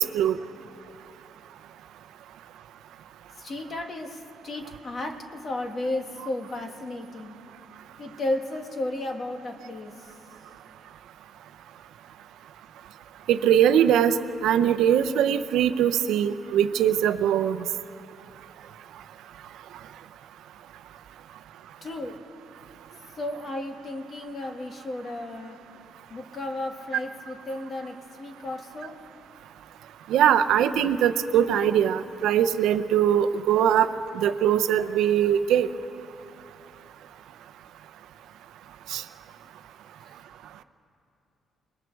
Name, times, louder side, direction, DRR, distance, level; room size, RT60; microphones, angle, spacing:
voice 1, 3.4-7.4 8.0-9.9 21.8-22.1 23.2-25.6 26.1-28.9, left 1 dB, 30° left, 3 dB, 1.6 m, -33 dB
voice 2, 13.3-14.1 14.4-17.6 30.1-33.9 34.1-35.7 38.9-39.0, right 9 dB, 80° right, 10 dB, 0.7 m, -21 dB
29.0 x 20.0 x 4.7 m, 2.9 s
cardioid pair, 175°, 0 cm